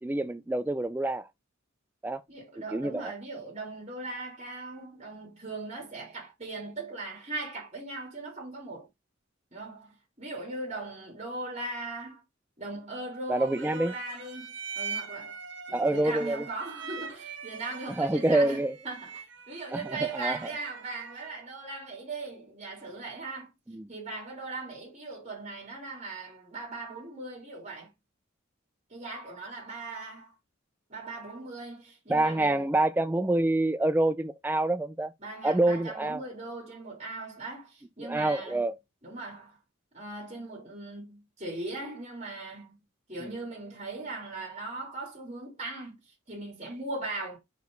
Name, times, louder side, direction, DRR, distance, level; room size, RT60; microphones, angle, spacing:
voice 1, 0.0-1.3 2.0-2.2 2.7-3.1 13.3-14.0 15.7-16.5 18.0-18.7 19.7-20.4 23.7-23.9 32.1-35.1 35.4-36.2 38.0-38.7, right 2 dB, 10° right, 0.3 m, -27 dB
voice 2, 2.3-8.9 9.5-12.2 12.6-15.4 15.7-23.5 23.9-27.9 28.9-30.3 30.9-32.8 35.2-38.7 39.0-39.6 39.9-42.7 43.1-47.4, right 2 dB, 30° right, 3.2 m, -39 dB
sound 1, 13.4-21.5, right 5 dB, 60° right, 1.1 m, -42 dB
5.2 x 4.7 x 3.9 m
head